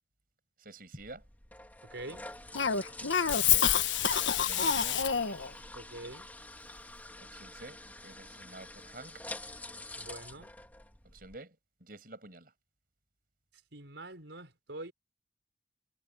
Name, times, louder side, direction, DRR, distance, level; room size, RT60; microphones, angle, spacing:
voice 1, 0.6-1.2 3.2-3.7 4.4-5.0 7.3-9.2 11.1-11.5 11.8-12.5, right 2 dB, 50° right, 6.9 m, -49 dB
sound 1, 1.0-11.4, left 2 dB, 10° left, 3.0 m, -47 dB
voice 2, 1.9-2.2 5.7-6.3 10.0-10.5 13.7-14.9, right 2 dB, 75° right, 5.1 m, -45 dB
Cough, 2.6-5.5, left 8 dB, 85° left, 1.3 m, -27 dB
head